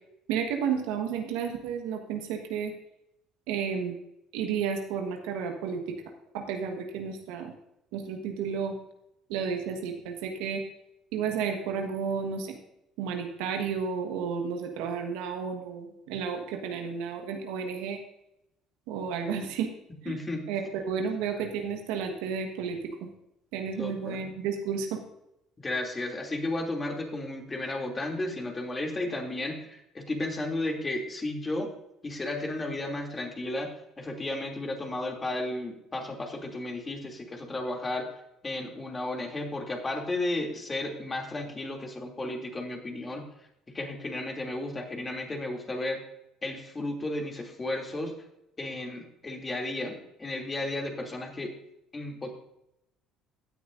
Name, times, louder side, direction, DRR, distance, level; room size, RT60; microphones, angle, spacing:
voice 1, 0.3-2.7 3.5-4.0 4.3-6.0 6.3-7.5 7.9-8.8 9.3-10.6 11.1-12.6 13.0-18.0 18.9-19.7 20.0-20.1 20.5-23.1 23.5-25.0, right 6 dB, 75° right, 4 dB, 1.4 m, -32 dB
voice 2, 20.1-20.4 23.8-24.3 25.6-31.7 32.0-33.7 34.0-38.1 38.4-43.2 43.7-46.0 46.4-48.1 48.6-51.5 51.9-52.3, left 2 dB, 25° left, 1 dB, 2.8 m, -33 dB
16.0 x 9.3 x 2.6 m, 0.84 s
hypercardioid pair, 65°, 0 cm